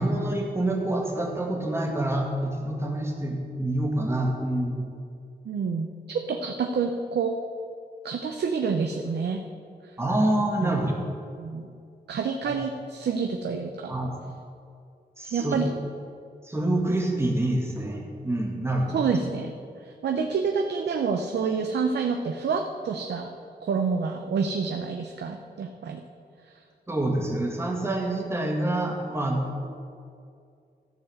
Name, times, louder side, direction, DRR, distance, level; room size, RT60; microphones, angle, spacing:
voice 1, 0.0-5.0 10.0-11.0 12.4-12.6 13.9-14.1 15.2-15.6 16.4-19.0 26.9-29.4, right 1 dB, 15° right, 0 dB, 1.8 m, -27 dB
voice 2, 5.4-7.3 8.0-9.4 10.6-10.8 11.4-11.7 12.1-13.9 15.3-15.7 18.9-19.5 19.8-23.3 23.6-26.0 26.5-26.6, right 5 dB, 80° right, 4 dB, 0.7 m, -28 dB
14.0 x 4.8 x 7.7 m, 2.4 s
wide cardioid pair, 135°, 17 cm